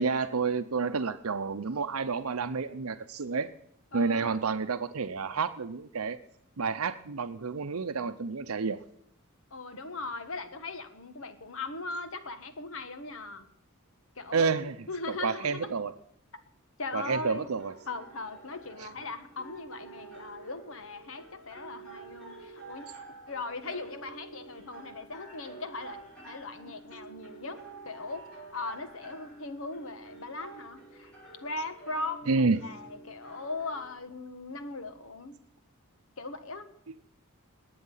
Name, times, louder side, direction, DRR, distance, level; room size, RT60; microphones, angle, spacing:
voice 1, 0.0-3.5 3.9-6.2 6.6-8.8 14.3-14.7 15.1-15.9 16.9-17.7 18.8-18.9 32.3-32.6, right 4 dB, 80° right, 9 dB, 0.7 m, -29 dB
voice 2, 3.9-4.4 9.5-13.5 14.1-15.7 16.8-17.6 17.9-26.0 26.2-31.1 31.4-35.4 36.2-36.7, left 3 dB, 65° left, 10 dB, 1.5 m, -39 dB
sound 1, 17.0-34.0, right 3 dB, 5° left, 7.5 m, -49 dB
20.0 x 8.6 x 5.6 m, 0.73 s
head